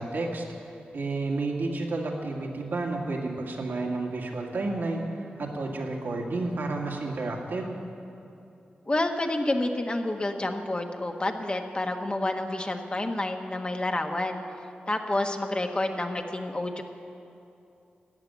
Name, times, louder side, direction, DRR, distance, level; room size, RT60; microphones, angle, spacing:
voice 1, 0.0-7.7, right 2 dB, 75° right, -1 dB, 2.1 m, -31 dB
voice 2, 8.9-14.4 14.9-16.8, left 2 dB, 30° left, 4 dB, 1.2 m, -29 dB
13.5 x 8.9 x 9.1 m, 2.8 s
cardioid pair, 60°, 3 cm